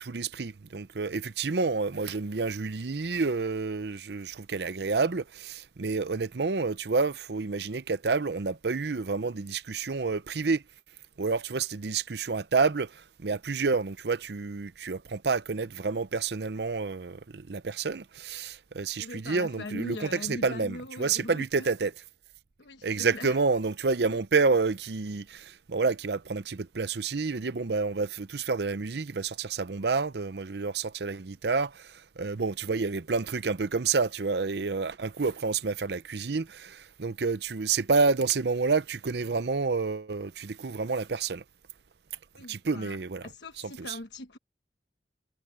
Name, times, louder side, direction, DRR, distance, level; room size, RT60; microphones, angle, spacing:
voice 1, 0.0-10.6 11.2-21.9 22.8-41.4 42.5-43.3 43.6-44.0, right 4 dB, 65° right, 0.7 m, -29 dB
voice 2, 19.0-21.7 22.6-23.4 24.1-24.2 42.3-43.0 43.2-44.4, left 2 dB, 80° left, 1.2 m, -41 dB
head